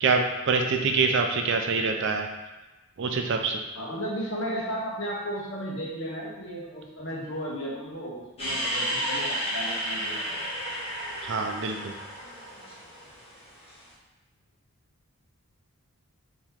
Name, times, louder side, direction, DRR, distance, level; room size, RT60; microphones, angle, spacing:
voice 1, 0.0-2.3 3.0-3.6 11.2-11.9, right 4 dB, 55° right, 4 dB, 0.4 m, -25 dB
voice 2, 3.7-10.4, equal, 60° left, -3 dB, 1.0 m, -34 dB
sound 1, 8.4-13.8, equal, 25° left, 1.2 m, -32 dB
4.4 x 2.9 x 3.6 m, 1.1 s
head